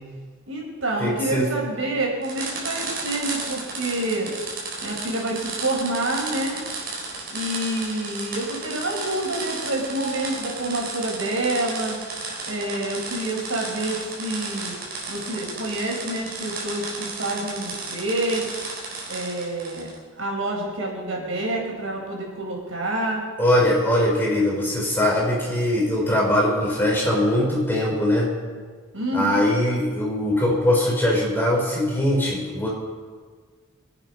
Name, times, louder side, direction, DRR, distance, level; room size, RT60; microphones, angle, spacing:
voice 1, 0.5-4.3 4.8-6.6 7.3-12.0 12.5-14.7 15.1-18.4 19.1-19.9 20.2-23.2 28.9-29.5, right 1 dB, 75° right, -1 dB, 5.1 m, -27 dB
voice 2, 1.0-1.5 23.4-28.3 29.1-32.7, left 1 dB, 10° left, -4 dB, 4.8 m, -21 dB
sound 1, 2.2-20.0, right 3 dB, 50° right, 4.5 m, -33 dB
25.5 x 9.1 x 5.5 m, 1.5 s
head